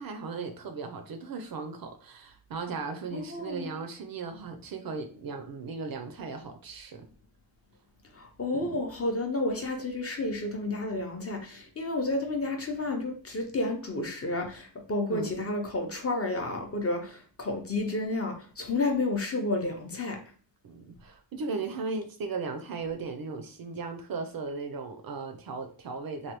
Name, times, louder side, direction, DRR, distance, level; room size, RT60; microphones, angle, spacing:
voice 1, 0.0-7.1 8.5-8.8 15.1-15.3 20.6-26.3, right 4 dB, 50° right, 0.4 m, -37 dB
voice 2, 3.1-3.7 8.1-20.2, left 2 dB, 30° left, 0.5 m, -31 dB
3.3 x 2.2 x 2.9 m
cardioid pair, 115°, 48 cm